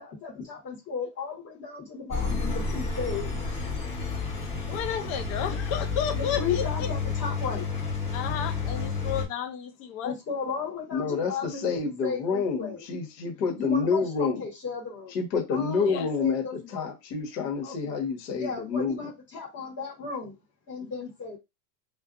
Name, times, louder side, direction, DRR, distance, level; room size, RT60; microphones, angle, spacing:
voice 1, 0.0-3.4 6.1-7.7 10.0-12.8 13.5-15.1 15.5-16.9 17.6-18.0 18.3-20.3 20.7-21.4, left 5 dB, 30° left, -4 dB, 1.3 m, -35 dB
Engine, 2.1-9.3, left 4 dB, 15° left, 1.0 m, -30 dB
voice 2, 4.7-6.9 8.1-10.2 15.9-16.1, left 8 dB, 50° left, 5 dB, 0.8 m, -32 dB
voice 3, 10.9-14.4 15.1-19.0, left 5 dB, 75° left, 1 dB, 1.4 m, -28 dB
2.5 x 2.4 x 2.5 m, 0.22 s
supercardioid pair, 155°, 49 cm